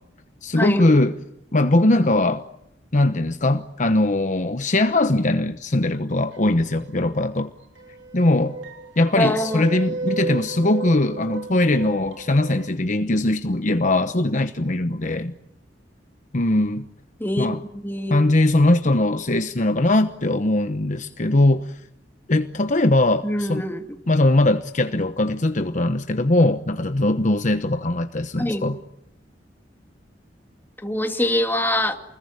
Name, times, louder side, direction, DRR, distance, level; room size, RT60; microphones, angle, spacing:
voice 1, 0.4-1.1 1.5-2.4 2.9-7.5 8.1-8.6 9.0-15.3 16.3-16.9 17.4-17.6 18.1-21.7 22.3-23.6 24.1-28.8, left 2 dB, 45° left, 1.0 m, -20 dB
sound 1, 6.3-7.4 7.8-12.7, right 3 dB, 80° right, 3.8 m, -34 dB
voice 2, 9.2-9.8 17.2-18.2 23.2-23.8 28.4-28.6 30.8-32.0, left 1 dB, 10° left, 2.4 m, -24 dB
29.0 x 21.5 x 9.7 m
head